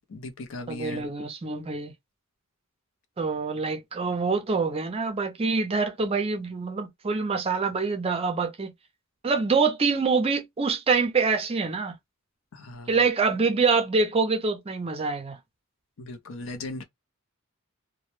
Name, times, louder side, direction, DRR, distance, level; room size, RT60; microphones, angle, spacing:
voice 1, 0.1-1.1 12.5-13.0 16.0-16.8, left 2 dB, 65° left, 0.6 m, -38 dB
voice 2, 0.7-1.9 3.2-8.7 9.2-11.9 12.9-15.4, right 4 dB, 25° right, 0.4 m, -25 dB
2.1 x 2.1 x 3.0 m
head